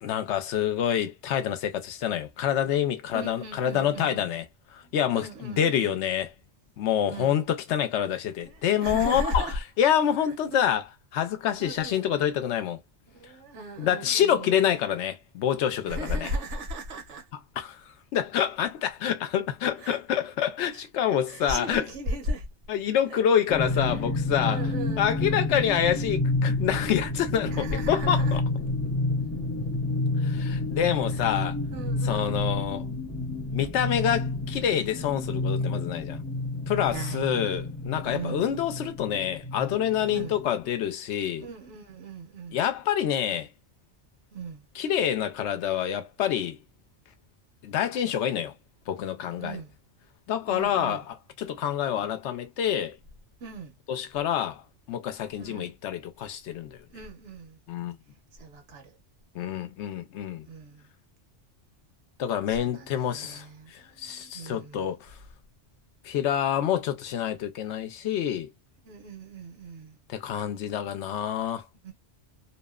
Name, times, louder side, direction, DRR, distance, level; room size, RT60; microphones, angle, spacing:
voice 1, 0.0-4.5 4.7-6.3 6.8-9.5 9.8-12.8 13.8-16.3 17.6-17.8 18.1-21.9 22.7-24.6 25.0-28.4 30.2-31.6 32.0-32.9 33.5-36.2 36.7-41.4 42.5-43.5 44.8-46.6 47.6-48.5 48.9-49.6 50.3-53.0 53.9-54.6 54.9-56.8 57.7-58.0 59.3-60.4 62.2-65.1 66.0-68.5 70.1-71.6, left 9 dB, 80° left, 0.9 m, -27 dB
voice 2, 3.1-4.3 4.8-5.9 7.0-7.4 8.4-9.5 10.5-10.7 11.6-12.1 13.1-14.6 15.9-17.3 19.8-20.0 20.7-20.8 21.3-22.5 23.1-23.2 23.9-24.0 24.3-25.8 27.4-28.4 31.7-32.4 36.6-37.2 38.1-38.5 40.0-40.4 41.4-42.6 44.3-44.7 49.4-49.8 50.5-51.0 53.4-53.7 55.4-55.7 56.9-57.6 58.4-58.9 60.4-60.9 62.6-65.0 68.8-70.0 71.8-71.9, right 1 dB, 85° right, 1.2 m, -37 dB
sound 1, 23.5-40.7, left 2 dB, 20° left, 0.4 m, -29 dB
2.8 x 2.0 x 2.3 m
omnidirectional pair, 1.2 m